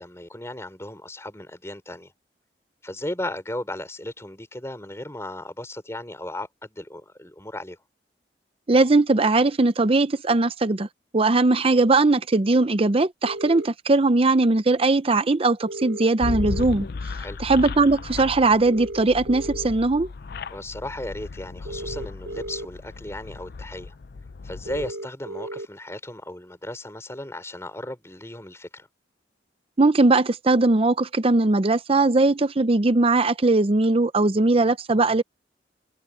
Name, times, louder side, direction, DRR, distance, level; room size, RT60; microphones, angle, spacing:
voice 1, 0.0-2.1 2.8-7.8 17.2-17.4 20.5-23.9 24.4-28.9, left 1 dB, 15° left, 4.3 m, -35 dB
voice 2, 8.7-10.9 11.1-16.9 17.4-20.1 29.8-35.2, right 3 dB, 35° right, 0.6 m, -20 dB
sound 1, 13.2-13.7 15.6-16.7 18.6-19.7 21.6-22.7 24.6-25.7, right 1 dB, 65° right, 0.8 m, -35 dB
sound 2, 16.2-24.9, left 4 dB, 60° left, 0.5 m, -35 dB
head